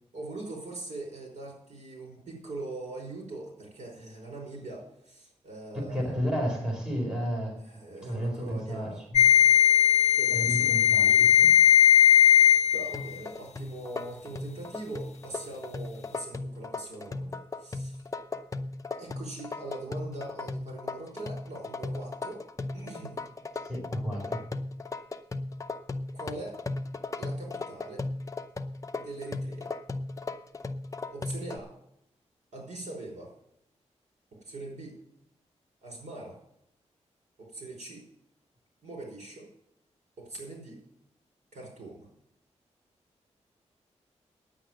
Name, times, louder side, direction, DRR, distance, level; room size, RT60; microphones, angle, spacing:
voice 1, 0.1-6.1 7.6-9.0 10.1-11.3 12.7-18.0 19.0-22.4 22.7-23.2 26.1-26.6 27.2-28.1 29.0-29.7 31.1-31.7 32.5-33.3 34.3-35.0 35.8-36.4 37.4-38.1 38.8-39.5 40.2-40.8 41.5-42.1, right 2 dB, 85° right, 1 dB, 5.2 m, -42 dB
voice 2, 5.9-7.6 8.0-9.2 10.3-11.5 23.6-24.4, equal, 5° right, -1 dB, 4.2 m, -32 dB
sound 1, 9.1-13.1, left 9 dB, 70° left, 0.5 m, -19 dB
sound 2, 12.9-31.6, left 3 dB, 30° left, 0.7 m, -37 dB
9.9 x 8.6 x 7.7 m, 0.74 s
wide cardioid pair, 145°, 12 cm